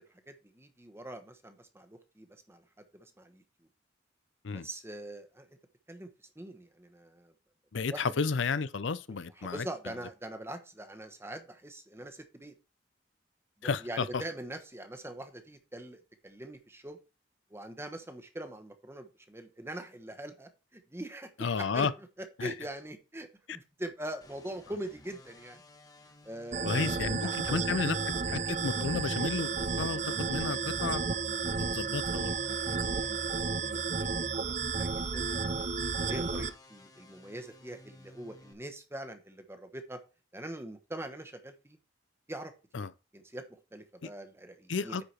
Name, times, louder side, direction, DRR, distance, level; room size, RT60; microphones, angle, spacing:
voice 1, 0.3-2.6 2.9-3.4 4.5-5.5 5.9-6.1 6.4-7.3 7.9-8.0 9.4-12.5 13.8-17.0 17.5-21.9 22.4-25.6 26.2-27.8 28.4-28.5 32.5-33.8 34.2-35.3 36.0-40.0 40.3-41.8 42.3-42.9 43.1-45.0, right 1 dB, 15° right, 1.1 m, -43 dB
voice 2, 7.7-9.7 13.6-14.2 21.4-21.9 22.4-22.5 26.6-28.0 28.3-29.5 29.8-31.0 31.5-32.3 36.3-36.4 42.7-42.9 44.0-44.1 44.7-45.0, left 5 dB, 75° left, 0.6 m, -32 dB
sound 1, 24.2-38.5, left 2 dB, 20° left, 1.2 m, -56 dB
sound 2, 26.5-36.5, right 4 dB, 40° right, 0.6 m, -32 dB
9.7 x 4.9 x 4.3 m
head